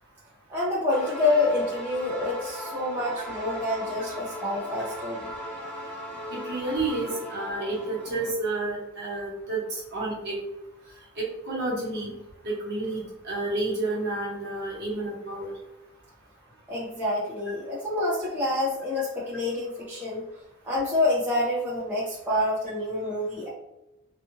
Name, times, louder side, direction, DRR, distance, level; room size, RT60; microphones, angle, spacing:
voice 1, 0.5-5.3 16.7-20.2 20.6-23.5, left 2 dB, 10° right, -9 dB, 0.7 m, -27 dB
sound 1, 0.9-8.3, equal, 10° left, 1.1 m, -38 dB
voice 2, 6.3-10.4 11.2-12.1 12.4-15.5, right 2 dB, 50° right, -5 dB, 1.0 m, -30 dB
2.6 x 2.4 x 2.7 m, 0.93 s
head